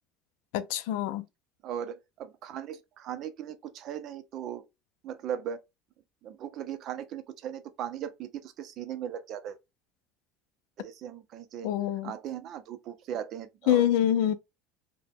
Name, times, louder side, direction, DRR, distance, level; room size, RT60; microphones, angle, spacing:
voice 1, 0.5-1.2 11.6-12.1 13.7-14.3, left 11 dB, 80° left, 0.3 m, -25 dB
voice 2, 1.6-4.6 5.0-5.6 6.2-9.6 10.8-11.7 12.0-13.9, right 9 dB, 55° right, 0.5 m, -38 dB
2.8 x 2.1 x 3.5 m
supercardioid pair, 115°, 0 cm